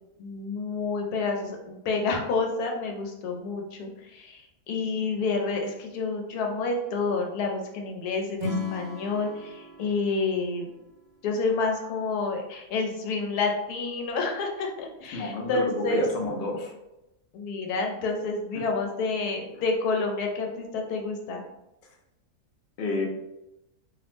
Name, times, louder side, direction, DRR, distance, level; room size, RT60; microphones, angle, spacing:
voice 1, 0.2-10.7 11.2-16.0 17.3-21.4, left 3 dB, 85° left, 2 dB, 1.1 m, -29 dB
Acoustic guitar / Strum, 8.4-11.7, left 2 dB, 65° right, 0.6 m, -36 dB
voice 2, 15.1-16.7 18.5-18.6 22.8-23.1, left 2 dB, 65° left, 0 dB, 0.6 m, -29 dB
2.7 x 2.0 x 3.1 m, 0.90 s
omnidirectional pair, 1.6 m